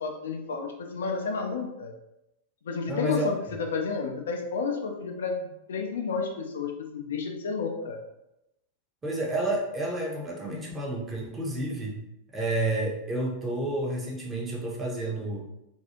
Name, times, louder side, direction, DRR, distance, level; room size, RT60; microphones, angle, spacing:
voice 1, 0.0-1.9 2.6-8.0, left 4 dB, 65° left, 3 dB, 0.3 m, -31 dB
voice 2, 2.9-3.3 9.0-12.0 12.3-15.5, right 1 dB, 15° right, -2 dB, 0.7 m, -30 dB
2.7 x 2.3 x 2.8 m, 0.87 s
figure-of-eight pair, 90°, 0 cm